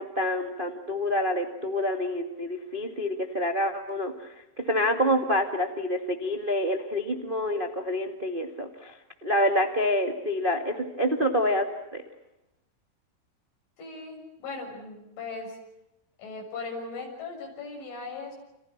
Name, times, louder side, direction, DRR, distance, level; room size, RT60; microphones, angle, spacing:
voice 1, 0.0-4.3 4.6-8.9 9.2-11.7 11.9-12.0, equal, 75° right, 4 dB, 0.4 m, -27 dB
voice 2, 13.8-15.6 16.2-18.4, left 3 dB, 80° left, 0 dB, 9.3 m, -38 dB
29.5 x 28.0 x 6.0 m, 0.89 s
omnidirectional pair, 5.5 m